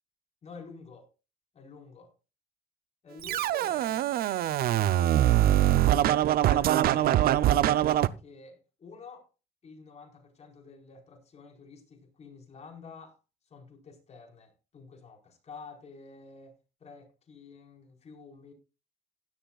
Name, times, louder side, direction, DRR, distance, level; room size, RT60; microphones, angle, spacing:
voice 1, 0.4-1.1 1.5-2.1 3.0-4.1 4.7-7.4 7.9-9.3 9.6-13.2 13.5-18.5, left 4 dB, 40° left, 4.6 m, -50 dB
Scratching (performance technique), 3.2-8.1, right 12 dB, 60° right, 0.6 m, -23 dB
16.5 x 11.5 x 2.4 m
cardioid pair, 110°, 17 cm